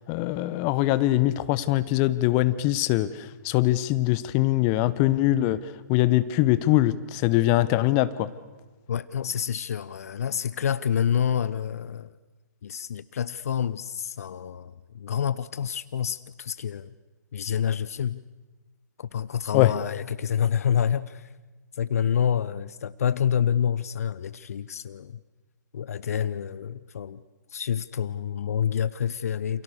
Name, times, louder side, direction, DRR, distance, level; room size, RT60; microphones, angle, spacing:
voice 1, 0.1-5.6 5.9-8.3 19.5-19.7, left 16 dB, 25° left, 1.1 m, -22 dB
voice 2, 8.9-12.1 12.6-16.9 17.3-18.2 19.0-21.3 21.7-25.2 25.7-27.2 27.5-29.6, left 8 dB, 55° left, 0.8 m, -28 dB
29.0 x 28.0 x 6.7 m
figure-of-eight pair, 125°, 10 cm